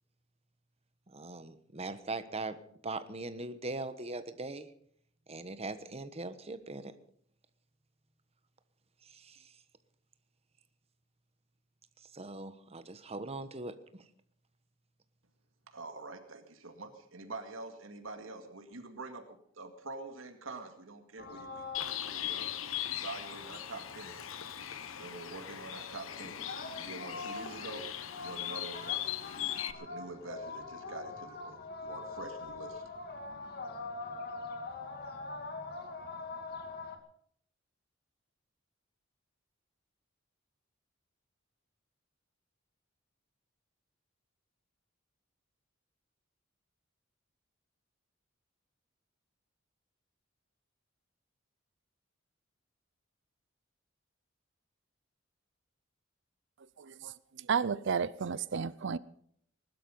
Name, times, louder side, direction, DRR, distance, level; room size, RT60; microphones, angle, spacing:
voice 1, 1.1-2.6 2.8-4.7 5.3-6.9 9.1-9.5 12.1-14.0, right 2 dB, 30° right, 1.2 m, -40 dB
voice 2, 15.7-19.3 19.6-22.5 22.9-24.3 24.9-27.9 28.2-29.0 29.8-32.8, right 3 dB, 80° right, 2.2 m, -46 dB
sound 1, 21.2-37.0, left 3 dB, 50° left, 2.1 m, -44 dB
Bird, 21.7-29.7, left 11 dB, 85° left, 1.1 m, -39 dB
voice 3, 56.8-59.0, right 6 dB, 60° right, 0.5 m, -33 dB
20.0 x 12.0 x 5.4 m
head